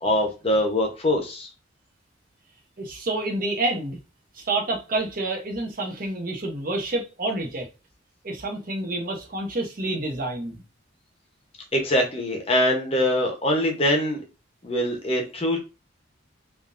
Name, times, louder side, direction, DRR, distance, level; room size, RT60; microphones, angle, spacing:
voice 1, 0.0-1.5 11.7-14.2 14.6-15.6, left 1 dB, 30° left, 0.8 m, -23 dB
voice 2, 2.8-4.0 4.3-7.7 8.2-10.6, right 2 dB, 45° right, 0.8 m, -28 dB
3.5 x 2.6 x 2.5 m
head